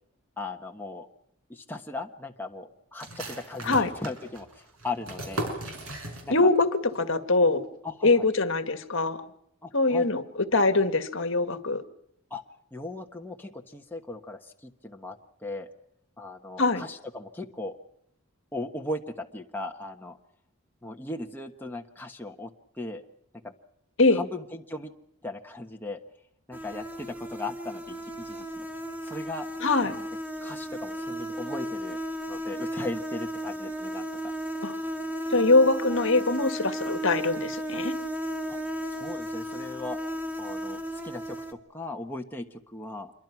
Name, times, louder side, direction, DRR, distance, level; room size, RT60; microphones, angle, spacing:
voice 1, 0.4-1.1 1.5-5.5 6.2-6.5 7.8-8.3 9.6-10.1 12.3-12.4 12.7-15.2 15.4-15.7 16.2-17.8 18.5-20.2 20.8-22.5 22.8-23.0 23.4-23.5 24.1-24.9 25.2-26.0 26.5-28.6 29.0-29.5 29.8-30.1 30.4-32.0 32.3-34.1 38.5-38.6 38.9-40.0 40.4-43.1, left 2 dB, 10° left, 2 dB, 1.2 m, -37 dB
sound 1, 3.0-6.6 6.9-7.0 7.4-7.9, right 1 dB, 75° right, 6.0 m, -37 dB
voice 2, 6.3-6.7 7.0-7.6 8.0-9.2 9.7-10.2 10.5-11.8 16.6-16.8 24.0-24.2 29.6-30.0 34.6-34.7 35.3-37.9, left 3 dB, 60° left, 9 dB, 1.8 m, -23 dB
sound 2, 26.5-41.5, right 1 dB, 10° right, 2.0 m, -34 dB
27.5 x 23.5 x 6.0 m, 0.75 s
head